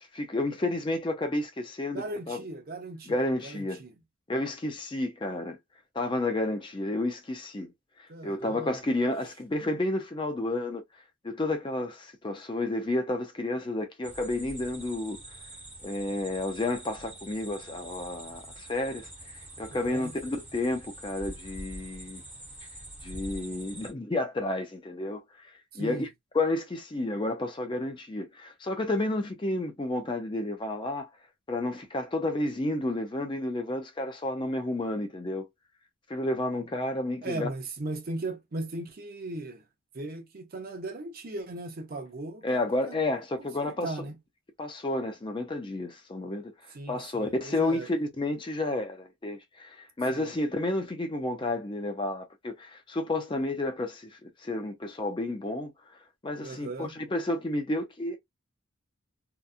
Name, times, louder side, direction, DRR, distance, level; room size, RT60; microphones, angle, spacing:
voice 1, 0.1-2.4 3.1-3.8 4.3-5.6 5.9-7.7 8.0-10.8 11.2-15.2 15.8-22.2 23.0-25.2 25.7-26.1 26.3-31.1 31.5-35.5 36.1-37.5 42.4-43.9 44.6-46.5 46.9-55.7 56.2-58.2, left 2 dB, 25° left, 0.4 m, -31 dB
voice 2, 1.9-3.9 8.1-8.8 19.7-20.1 25.7-26.1 37.2-39.6 39.9-43.0 43.4-44.1 46.7-47.9 50.1-50.4 56.4-57.0, right 2 dB, 45° right, 0.5 m, -38 dB
sound 1, 14.0-23.9, right 1 dB, 10° right, 0.8 m, -45 dB
2.8 x 2.2 x 2.4 m
head